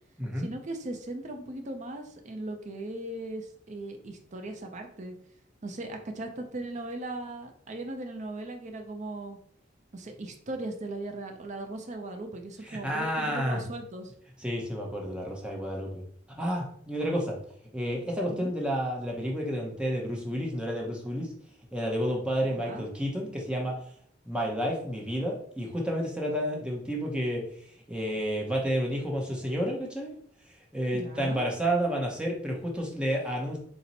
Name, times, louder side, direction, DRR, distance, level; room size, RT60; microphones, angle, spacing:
voice 1, 0.4-5.1 5.6-9.4 9.9-14.1 18.3-18.5 22.4-22.9 30.9-31.4, right 2 dB, 40° right, 5 dB, 0.5 m, -38 dB
voice 2, 12.7-13.6 14.4-16.0 16.4-17.4 17.7-21.3 21.7-23.8 24.3-27.5 27.9-30.2 30.7-33.6, equal, 5° right, -1 dB, 0.8 m, -30 dB
4.2 x 2.1 x 4.0 m, 0.62 s
head